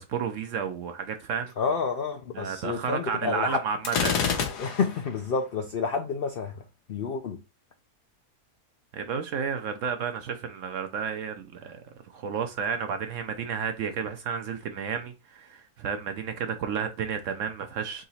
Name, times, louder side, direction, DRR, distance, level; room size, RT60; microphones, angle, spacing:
voice 1, 0.0-1.5 2.4-4.4 8.9-11.8 12.1-18.0, right 6 dB, 65° right, 0.8 m, -32 dB
voice 2, 1.6-3.6 4.6-6.6 6.9-7.4, left 5 dB, 70° left, 0.5 m, -29 dB
Gunshot gunfire, 3.8-5.1, left 6 dB, 85° left, 1.5 m, -27 dB
3.8 x 2.9 x 4.1 m
omnidirectional pair, 1.7 m